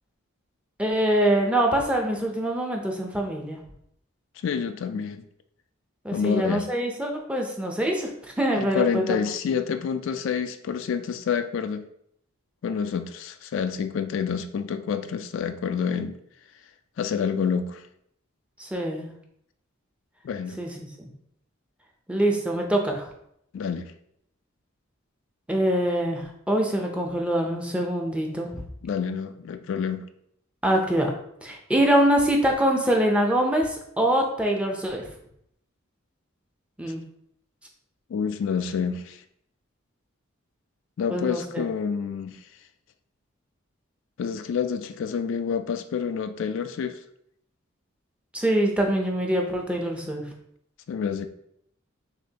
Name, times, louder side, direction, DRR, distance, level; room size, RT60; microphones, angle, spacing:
voice 1, 0.8-3.6 6.0-9.2 18.6-19.1 20.6-21.1 22.1-23.1 25.5-28.6 30.6-31.1 31.4-35.1 36.8-37.0 41.1-41.7 48.3-50.2, right 1 dB, 5° right, 1 dB, 0.6 m, -24 dB
voice 2, 4.4-5.2 6.1-6.7 8.6-11.9 12.6-16.2 17.0-17.8 20.2-20.6 23.5-23.9 28.8-30.0 38.1-39.2 41.0-42.4 44.2-47.0 50.9-51.3, left 6 dB, 65° left, 9 dB, 0.3 m, -28 dB
6.3 x 2.6 x 2.8 m, 0.72 s
head